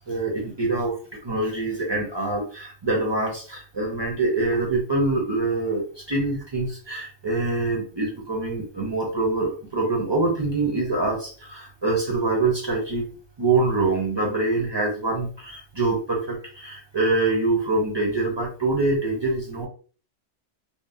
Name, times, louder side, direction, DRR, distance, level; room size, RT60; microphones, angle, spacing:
voice 1, 0.1-1.0 1.2-13.1 13.4-19.7, right 2 dB, 35° right, -1 dB, 0.4 m, -25 dB
2.8 x 2.0 x 2.5 m, 0.39 s
omnidirectional pair, 1.2 m